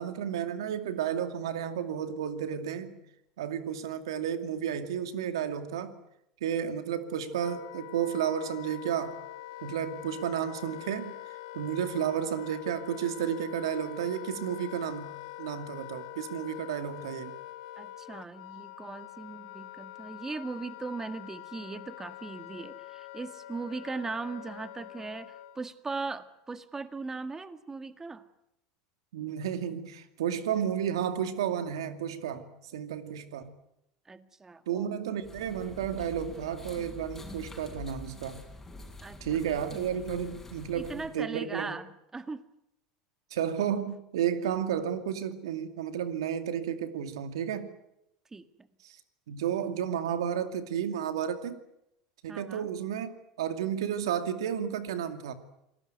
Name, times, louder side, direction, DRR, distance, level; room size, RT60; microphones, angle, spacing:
voice 1, 0.0-3.0 3.4-5.9 6.4-9.2 9.6-11.1 11.5-17.3 29.1-33.5 34.7-38.4 39.2-41.8 43.3-47.7 48.8-49.0 49.3-51.6 52.2-53.1 53.4-55.3, right 9 dB, 85° right, 9 dB, 2.4 m, -32 dB
Wind instrument woodwind instrument, 6.9-25.7, left 16 dB, 75° left, 1.2 m, -45 dB
voice 2, 17.8-28.2 34.1-34.9 39.0-40.1 40.7-42.4 48.3-48.7 52.3-52.7, right 4 dB, 20° right, 11 dB, 1.9 m, -39 dB
sound 1, 35.2-41.2, left 2 dB, 10° left, 6.8 m, -46 dB
27.0 x 19.0 x 9.3 m, 0.84 s
hypercardioid pair, 90°, 3 cm